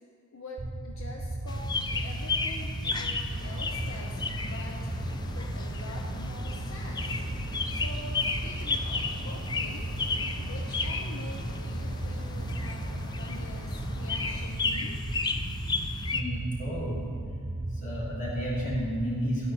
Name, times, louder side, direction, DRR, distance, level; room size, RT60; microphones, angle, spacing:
voice 1, 0.3-4.9 5.3-9.9 10.4-15.0, left 1 dB, 70° left, 0 dB, 0.9 m, -45 dB
sound 1, 0.6-19.1, right 1 dB, 50° right, 0.6 m, -36 dB
sound 2, 1.5-16.2, left 3 dB, 20° left, 0.4 m, -34 dB
sound 3, 3.3-14.5, left 1 dB, 50° left, 1.2 m, -46 dB
voice 2, 16.1-17.0 17.7-19.5, equal, 35° left, -5 dB, 2.6 m, -32 dB
11.0 x 8.8 x 4.7 m, 2.4 s
head